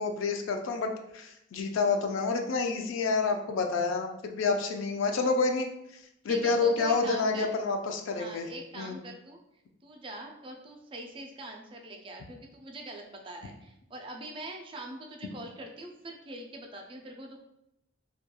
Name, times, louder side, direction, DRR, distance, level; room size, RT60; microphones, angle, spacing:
voice 1, 0.0-5.7 6.2-8.5 8.8-9.0, left 4 dB, 85° left, 4 dB, 0.4 m, -28 dB
voice 2, 6.3-7.5 8.1-9.4 9.8-17.4, right 1 dB, 25° right, 2 dB, 0.3 m, -43 dB
2.8 x 2.2 x 2.2 m, 0.84 s
head